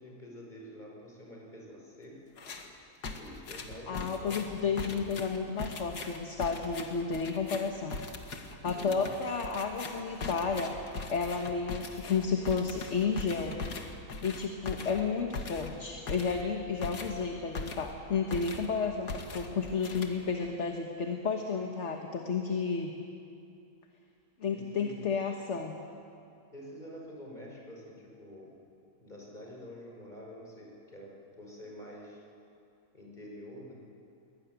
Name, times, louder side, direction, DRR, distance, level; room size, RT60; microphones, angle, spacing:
voice 1, 0.0-2.3 3.1-5.1 8.8-9.1 24.5-25.1 26.5-28.5 29.0-32.2 32.9-33.8, equal, 30° left, -2 dB, 5.3 m, -47 dB
sound 1, 2.4-2.7 3.0-18.0 18.3-18.8 19.1-20.5, left 4 dB, 85° left, 2.3 m, -41 dB
voice 2, 3.9-8.0 8.6-13.6 14.2-22.9 24.4-25.8, left 5 dB, 50° left, 3 dB, 1.6 m, -32 dB
23.0 x 18.0 x 9.3 m, 2.6 s
omnidirectional pair, 1.7 m